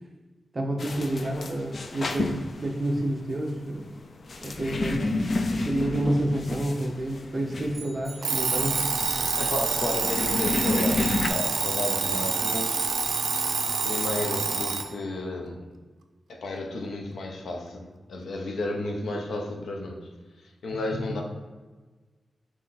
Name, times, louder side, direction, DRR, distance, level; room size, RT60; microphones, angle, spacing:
voice 1, 0.5-2.3 2.6-3.9 4.4-8.8, right 1 dB, 30° right, 0 dB, 0.7 m, -29 dB
sound 1, 0.8-11.3, left 2 dB, 45° left, 0.3 m, -31 dB
sound 2, 7.7-8.8, right 3 dB, 5° right, 1.1 m, -48 dB
Alarm, 8.2-14.9, right 5 dB, 75° right, 0.4 m, -27 dB
voice 2, 9.4-12.8 13.8-15.7 16.3-20.1 20.4-21.2, left 2 dB, 75° left, 2 dB, 0.7 m, -32 dB
3.8 x 3.1 x 3.9 m, 1.3 s
wide cardioid pair, 150°, 0 cm